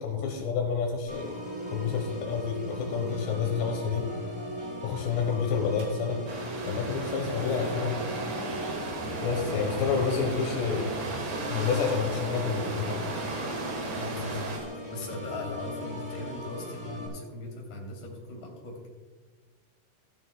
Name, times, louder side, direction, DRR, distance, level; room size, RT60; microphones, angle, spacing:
voice 1, 0.0-1.4 1.7-4.1 4.8-6.2 6.6-8.0 9.2-10.9 11.5-13.1, left 6 dB, 75° left, 3 dB, 3.2 m, -29 dB
Organ, 1.1-17.1, equal, 5° right, 3.2 m, -38 dB
sound 1, 5.8-14.6, right 3 dB, 70° right, 4.5 m, -41 dB
sound 2, 6.3-14.6, right 2 dB, 45° right, 2.3 m, -36 dB
voice 2, 14.0-18.9, left 2 dB, 45° left, -1 dB, 3.7 m, -39 dB
15.0 x 12.5 x 2.2 m, 1.3 s
omnidirectional pair, 5.1 m